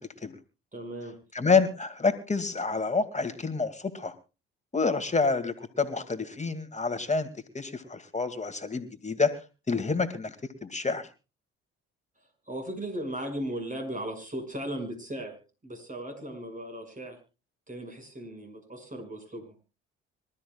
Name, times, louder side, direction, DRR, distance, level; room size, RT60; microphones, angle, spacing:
voice 1, 0.7-1.2 12.5-17.2 17.7-19.6, right 1 dB, 25° right, 5 dB, 6.1 m, -37 dB
voice 2, 1.3-4.1 4.7-7.3 7.5-9.3 9.7-10.3 10.6-11.0, left 4 dB, 25° left, 9 dB, 2.3 m, -28 dB
25.5 x 13.0 x 2.4 m, 0.31 s
hypercardioid pair, 55°, 30 cm